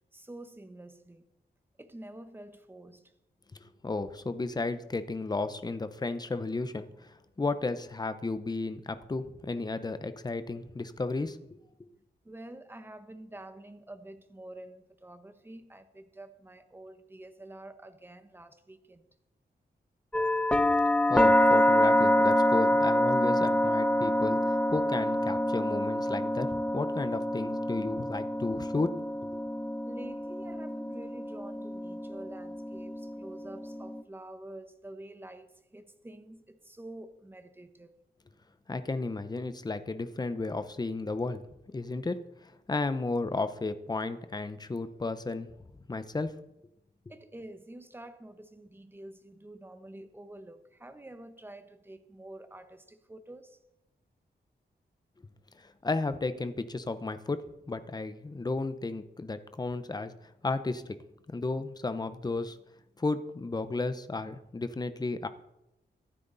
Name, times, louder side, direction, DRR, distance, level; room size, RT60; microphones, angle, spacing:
voice 1, 0.1-1.2 1.8-3.1 12.2-19.0 29.9-37.9 47.1-53.6, right 1 dB, 10° right, 9 dB, 1.1 m, -48 dB
voice 2, 3.8-11.4 11.8-11.9 21.1-24.4 24.7-29.0 38.7-41.4 41.7-45.5 45.9-46.4 55.6-57.4 57.7-61.0 61.3-62.6 63.0-65.3, left 3 dB, 25° left, 11 dB, 0.8 m, -33 dB
sound 1, 20.1-34.0, left 1 dB, 5° left, 0.4 m, -27 dB
24.5 x 9.6 x 4.0 m, 0.90 s
wide cardioid pair, 140°, 18 cm